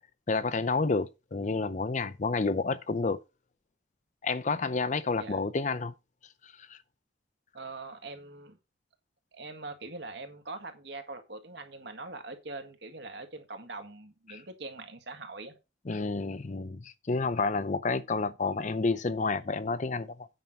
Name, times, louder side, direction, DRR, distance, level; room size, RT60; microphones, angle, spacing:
voice 1, 0.3-3.2 4.2-5.9 6.4-6.8 14.3-14.4 15.9-20.3, left 3 dB, 40° left, 0.5 m, -30 dB
voice 2, 7.5-8.6 9.3-15.6, right 3 dB, 60° right, 1.9 m, -43 dB
9.2 x 6.0 x 5.4 m
head